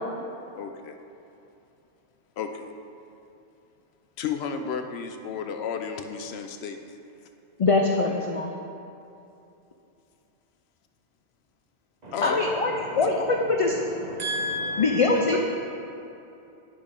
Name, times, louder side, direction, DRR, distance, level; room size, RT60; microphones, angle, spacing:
voice 1, 0.5-1.0 2.4-2.7 4.2-7.0 12.1-12.5 13.0-13.2, left 6 dB, 75° left, 6 dB, 0.8 m, -32 dB
voice 2, 7.6-8.5 12.2-13.1 13.6-13.7 14.8-15.4, left 3 dB, 55° left, 1 dB, 0.3 m, -23 dB
voice 3, 12.0-15.4, equal, 40° right, -2 dB, 1.0 m, -34 dB
11.0 x 5.1 x 3.7 m, 2.8 s
omnidirectional pair, 1.1 m